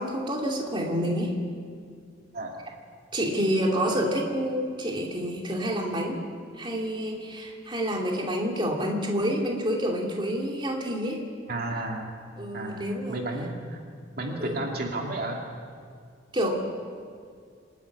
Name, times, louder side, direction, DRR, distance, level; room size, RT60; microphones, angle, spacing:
voice 1, 0.0-1.4 3.1-6.2 6.5-11.2 12.4-13.2 14.3-14.6 16.3-16.6, equal, 25° right, -1 dB, 2.6 m, -28 dB
voice 2, 2.3-2.7 11.5-12.1 12.5-13.8 14.2-15.4, right 2 dB, 55° right, 0 dB, 2.5 m, -32 dB
26.5 x 11.0 x 9.6 m, 2.2 s
head